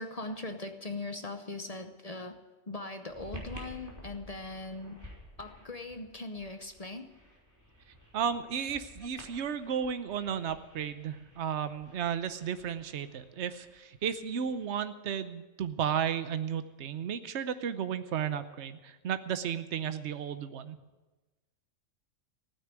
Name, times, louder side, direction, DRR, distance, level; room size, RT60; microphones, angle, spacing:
voice 1, 0.0-2.4 2.7-5.0 5.4-7.1 9.0-9.1, left 2 dB, 35° left, 7 dB, 0.8 m, -40 dB
sound 1, 3.1-14.6, equal, 15° right, 3.6 m, -52 dB
voice 2, 8.1-20.8, right 8 dB, 65° right, 11 dB, 1.1 m, -33 dB
15.5 x 9.7 x 7.7 m, 1.2 s
omnidirectional pair, 1.3 m